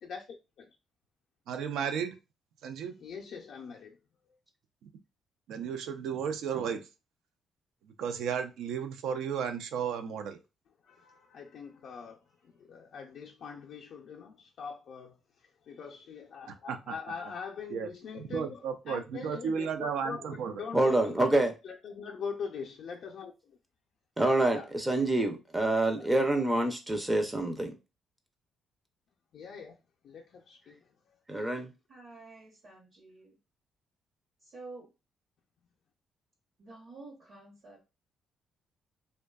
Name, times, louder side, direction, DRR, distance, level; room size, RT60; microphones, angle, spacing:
voice 1, 0.0-0.7 3.0-4.0 10.8-23.6 24.5-24.7 26.0-26.1 29.3-29.8 30.0-30.8 31.3-31.5, left 6 dB, 65° left, 0.4 m, -43 dB
voice 2, 1.5-2.2 2.6-2.9 4.8-4.9 5.5-6.9 8.0-10.4 16.5-16.9 17.7-17.9 18.1-20.6, right 7 dB, 80° right, 0.3 m, -34 dB
voice 3, 20.7-21.5 24.2-27.7 31.3-31.7, right 2 dB, 15° right, 0.4 m, -27 dB
voice 4, 31.9-33.3 34.4-34.9 36.6-37.8, right 3 dB, 55° right, 0.9 m, -49 dB
2.5 x 2.2 x 2.2 m
cardioid pair, 90°, 0 cm